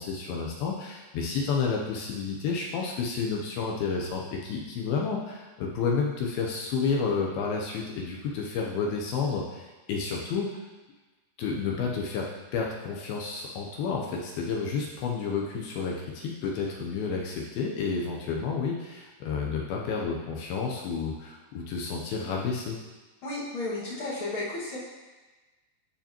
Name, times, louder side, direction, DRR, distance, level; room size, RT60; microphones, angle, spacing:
voice 1, 0.0-10.5 11.4-22.8, left 5 dB, 75° left, -1 dB, 2.4 m, -30 dB
voice 2, 23.2-24.8, left 2 dB, 45° left, -8 dB, 1.8 m, -33 dB
14.5 x 4.9 x 2.9 m, 1.2 s
omnidirectional pair, 4.8 m